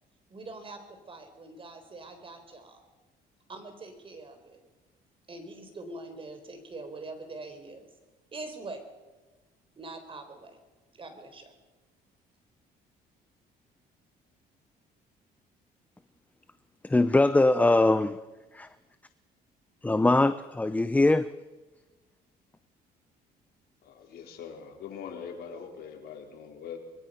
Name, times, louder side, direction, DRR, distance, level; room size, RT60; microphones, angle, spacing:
voice 1, 0.3-2.8 3.5-4.6 5.3-7.9 8.3-8.8 9.8-10.6 10.9-11.5, right 2 dB, 30° right, 4.4 m, -43 dB
voice 2, 16.8-18.2 18.5-18.7 19.8-21.3, left 2 dB, 10° left, 0.6 m, -22 dB
voice 3, 23.8-26.8, left 7 dB, 70° left, 4.3 m, -42 dB
24.0 x 21.5 x 5.7 m
cardioid pair, 110°, 17 cm